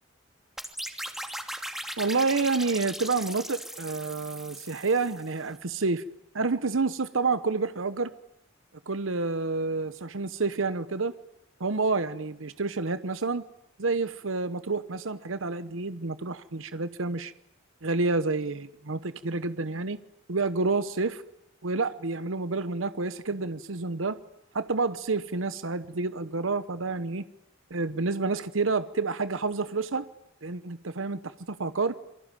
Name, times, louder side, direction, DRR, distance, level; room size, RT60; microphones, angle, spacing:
sound 1, 0.6-5.4, right 1 dB, ahead, 2.8 m, -38 dB
voice 1, 2.0-6.0 6.3-8.1 8.9-11.1 11.6-13.4 13.8-17.3 17.8-20.0 20.3-21.2 21.6-24.2 24.5-27.2 27.7-30.1 30.4-31.9, right 3 dB, 85° right, 13 dB, 1.0 m, -29 dB
27.5 x 24.0 x 9.1 m, 0.80 s
head